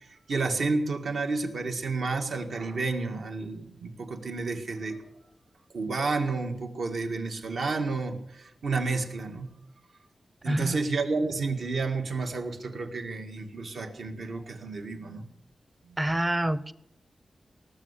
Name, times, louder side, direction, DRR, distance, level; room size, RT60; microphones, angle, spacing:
voice 1, 0.3-5.0 5.7-9.5 10.4-15.3 15.9-16.0, right 3 dB, 75° right, 4 dB, 1.9 m, -30 dB
voice 2, 10.5-10.8 16.0-16.7, right 1 dB, 15° right, 17 dB, 0.6 m, -27 dB
19.0 x 7.1 x 9.7 m, 0.83 s
wide cardioid pair, 130°, 0 cm